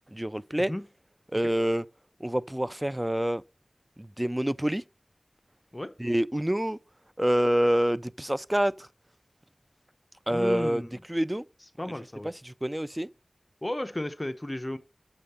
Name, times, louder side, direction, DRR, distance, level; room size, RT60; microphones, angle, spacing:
voice 1, 0.1-0.7 1.3-1.8 2.2-3.4 4.0-4.8 6.0-6.8 7.2-8.9 10.3-10.8 11.1-11.4 12.2-13.1, equal, 15° right, 0.3 m, -27 dB
voice 2, 10.3-10.9 11.8-12.3 13.6-14.8, left 1 dB, 25° left, 0.7 m, -33 dB
6.8 x 5.1 x 5.5 m
wide cardioid pair, 55°, 0 cm